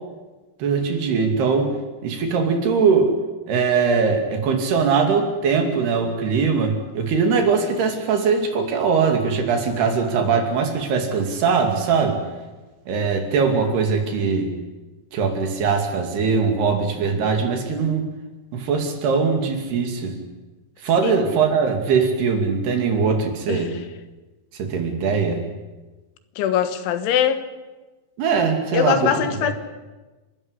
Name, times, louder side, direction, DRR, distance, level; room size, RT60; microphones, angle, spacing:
voice 1, 0.6-1.7 2.0-3.1 3.5-12.2 12.9-14.5 15.1-18.1 18.5-20.1 20.8-23.7 24.5-25.4 28.2-29.1 29.4-29.5, right 5 dB, 60° right, 4 dB, 4.4 m, -21 dB
voice 2, 26.4-27.5 28.7-29.5, left 10 dB, 85° left, 10 dB, 3.8 m, -22 dB
30.0 x 13.0 x 9.9 m, 1.2 s
omnidirectional pair, 5.3 m